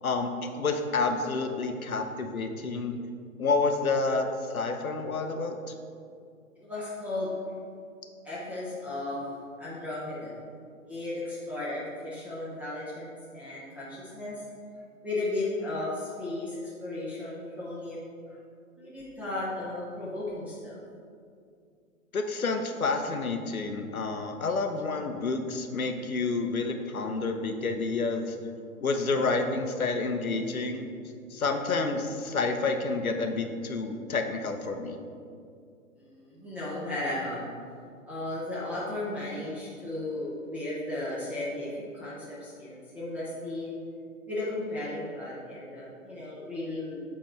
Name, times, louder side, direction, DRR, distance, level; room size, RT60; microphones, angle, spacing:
voice 1, 0.6-3.0 3.4-5.6 22.1-28.4 28.8-30.9 31.3-35.0, left 3 dB, 80° left, 6 dB, 0.8 m, -29 dB
voice 2, 6.6-7.3 8.2-9.2 9.6-10.4 10.9-14.4 15.0-18.0 18.2-18.3 18.8-20.8 36.0-37.5 38.1-43.7 44.2-47.0, left 2 dB, 5° right, -9 dB, 0.8 m, -35 dB
7.6 x 4.1 x 4.4 m, 2.3 s
figure-of-eight pair, 125°, 42 cm